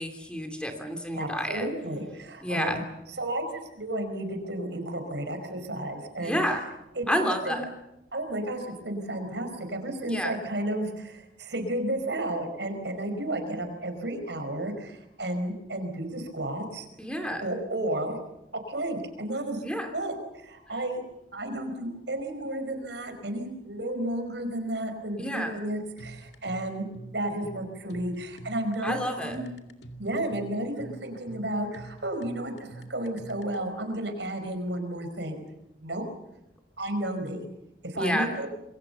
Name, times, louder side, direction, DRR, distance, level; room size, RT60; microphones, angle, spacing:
voice 1, 0.0-1.7 2.4-2.8 6.2-6.6 7.1-7.7 10.0-10.4 17.0-17.4 19.6-19.9 25.2-25.6 28.8-29.4 38.0-38.3, equal, 5° left, 5 dB, 2.9 m, -29 dB
voice 2, 1.1-2.8 3.1-6.5 6.9-7.1 7.4-7.6 8.1-16.9 17.4-18.2 18.5-19.6 19.9-21.0 21.3-26.9 27.1-29.5 30.0-35.4 35.8-36.0 36.8-37.5 37.8-38.5, right 1 dB, 75° right, 7 dB, 5.1 m, -32 dB
sound 1, 26.0-33.6, right 2 dB, 75° left, 2.3 m, -45 dB
28.0 x 22.5 x 7.0 m, 0.91 s
head